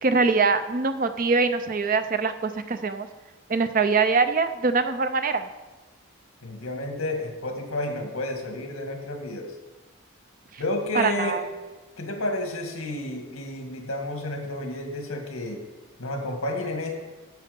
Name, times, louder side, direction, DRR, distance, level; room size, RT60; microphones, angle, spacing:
voice 1, 0.0-3.1 3.5-5.5 10.9-11.4, right 4 dB, 40° right, 10 dB, 0.5 m, -23 dB
voice 2, 6.4-9.5 10.6-11.4 12.0-15.6 16.0-16.9, left 1 dB, 70° left, 3 dB, 2.0 m, -31 dB
10.5 x 7.6 x 5.2 m, 1.2 s
head